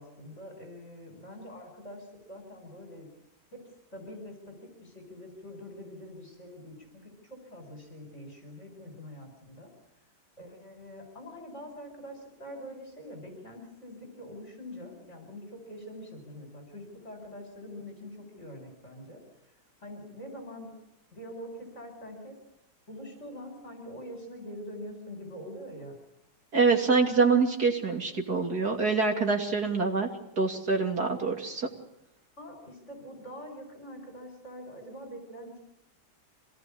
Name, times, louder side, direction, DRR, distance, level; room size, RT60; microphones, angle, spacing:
voice 1, 0.0-3.1 3.5-3.6 3.9-4.6 4.8-6.9 7.2-9.7 10.4-19.2 19.8-20.7 21.1-22.4 22.9-26.0 32.4-35.6, equal, 40° left, 3 dB, 5.4 m, -44 dB
voice 2, 26.5-30.1 30.4-31.7, right 4 dB, 60° right, 2 dB, 3.3 m, -25 dB
26.0 x 18.5 x 8.6 m, 0.87 s
omnidirectional pair, 1.9 m